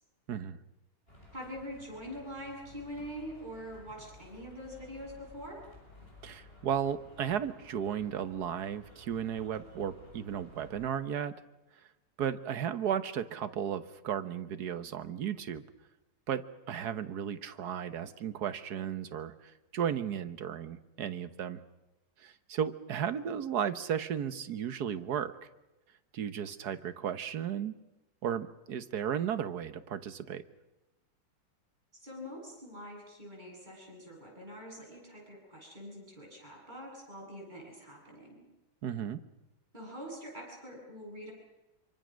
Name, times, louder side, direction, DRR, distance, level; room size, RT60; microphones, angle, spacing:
voice 1, 0.3-0.6 6.2-11.3 12.2-15.6 16.3-21.6 22.2-25.4 26.1-27.7 28.2-30.4 38.8-39.2, right 8 dB, 55° right, 11 dB, 1.5 m, -34 dB
sound 1, 1.1-10.8, left 1 dB, 25° left, 7.3 m, -55 dB
voice 2, 1.3-5.6 31.9-38.4 39.7-41.3, equal, 20° right, -2 dB, 8.3 m, -44 dB
26.5 x 24.0 x 6.4 m, 1.0 s
omnidirectional pair, 2.2 m